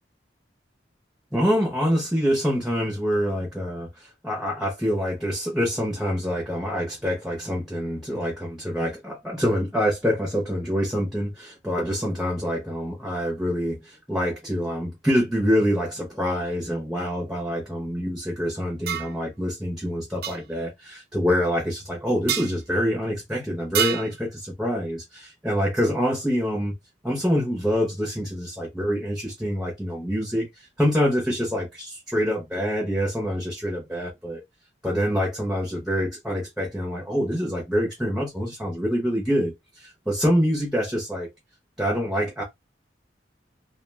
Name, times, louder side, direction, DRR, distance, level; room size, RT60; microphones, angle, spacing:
voice 1, 1.3-26.7 27.0-34.4 34.8-41.3 41.8-42.4, equal, ahead, 0.7 m, -26 dB
sound 1, 18.9-19.1 20.2-20.4 22.3-22.5 23.7-24.1, right 10 dB, 55° right, 0.4 m, -26 dB
2.3 x 2.3 x 3.2 m
head